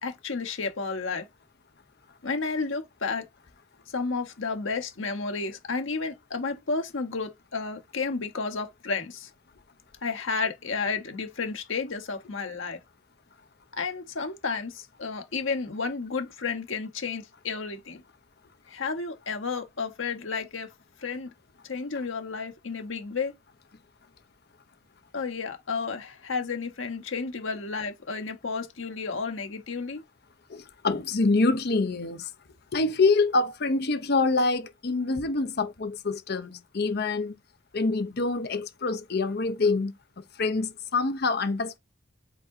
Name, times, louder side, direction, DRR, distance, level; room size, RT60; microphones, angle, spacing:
voice 1, 0.0-1.2 2.2-3.2 3.9-9.3 10.0-12.8 13.7-18.0 18.7-20.7 21.0-21.3 21.7-23.3 25.1-30.0, left 4 dB, 70° left, 1.1 m, -32 dB
voice 2, 30.5-32.3 32.7-37.4 37.7-39.9 40.4-41.8, left 3 dB, 50° left, 0.7 m, -26 dB
5.1 x 3.8 x 2.6 m
head